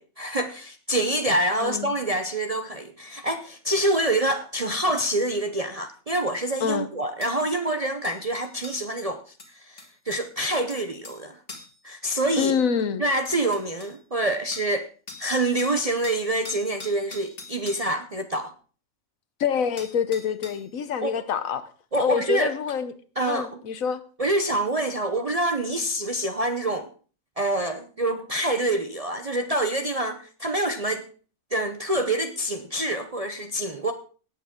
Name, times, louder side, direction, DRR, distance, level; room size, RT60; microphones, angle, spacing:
voice 1, 0.0-9.2 9.5-11.4 11.8-12.6 13.0-14.9 15.2-18.5 21.0-21.1 21.9-22.5 23.2-23.6 24.2-26.9 27.4-31.1 31.5-33.9, right 1 dB, 35° right, 0.6 m, -26 dB
voice 2, 1.6-1.9 6.6-6.9 12.4-13.0 19.4-21.7 22.0-22.9 23.3-24.0, left 7 dB, 70° left, 1.3 m, -26 dB
sound 1, 6.4-6.5 7.2-7.4 8.0-8.9 9.4-11.2 11.5-11.8 12.8-12.9 13.2-13.9 14.5-14.8 15.1-15.3 15.6-17.9 19.4-19.5 19.8-20.7 21.9-22.0, left 3 dB, 40° left, 1.8 m, -43 dB
17.5 x 8.7 x 3.7 m
omnidirectional pair, 1.5 m